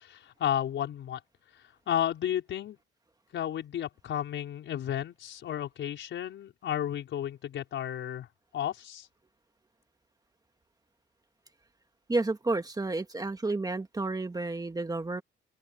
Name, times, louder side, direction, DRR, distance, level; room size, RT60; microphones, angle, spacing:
voice 1, 0.1-1.2 1.9-2.8 3.3-8.3 8.5-9.1, left 10 dB, 70° left, 5.2 m, -32 dB
voice 2, 12.1-15.2, right 2 dB, 20° right, 2.0 m, -31 dB
open air
cardioid pair, 90°, 20 cm